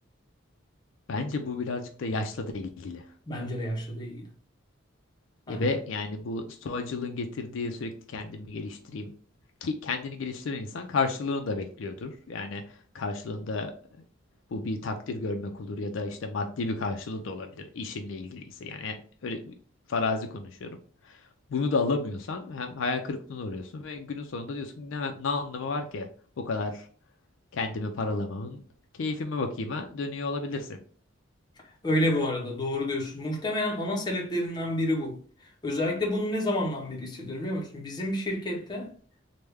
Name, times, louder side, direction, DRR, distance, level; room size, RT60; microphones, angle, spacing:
voice 1, 1.1-3.1 5.5-9.1 9.6-13.7 14.5-19.5 19.9-20.8 21.0-21.2 21.5-26.1 26.4-26.9 27.5-28.6 28.9-30.8, left 3 dB, 65° left, 0.4 m, -32 dB
voice 2, 3.3-4.2 5.5-5.7 31.8-35.2 35.6-38.9, left 1 dB, 20° left, 0.6 m, -29 dB
3.2 x 2.1 x 3.4 m
head